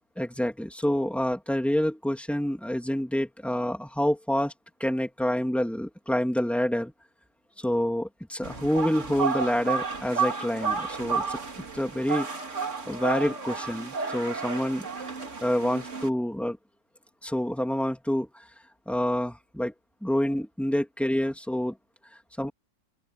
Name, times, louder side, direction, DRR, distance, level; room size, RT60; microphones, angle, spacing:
voice 1, 0.2-4.5 4.8-6.9 7.6-12.3 12.9-15.1 15.4-16.6 17.2-18.4 18.9-19.7 20.0-21.8 22.4-22.5, equal, ahead, 2.8 m, -27 dB
sound 1, 8.4-16.1, right 5 dB, 45° right, 2.5 m, -32 dB
open air
omnidirectional pair, 1.8 m